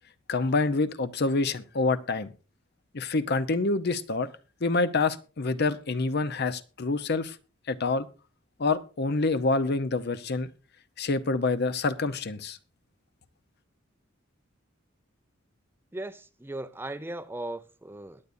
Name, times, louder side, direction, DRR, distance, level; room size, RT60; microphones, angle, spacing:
voice 1, 0.3-2.3 2.9-4.3 4.6-7.4 7.7-8.1 8.6-10.5 11.0-12.6, left 3 dB, 55° left, 0.8 m, -27 dB
voice 2, 15.9-18.2, right 1 dB, 10° right, 0.5 m, -37 dB
21.5 x 8.3 x 2.6 m
head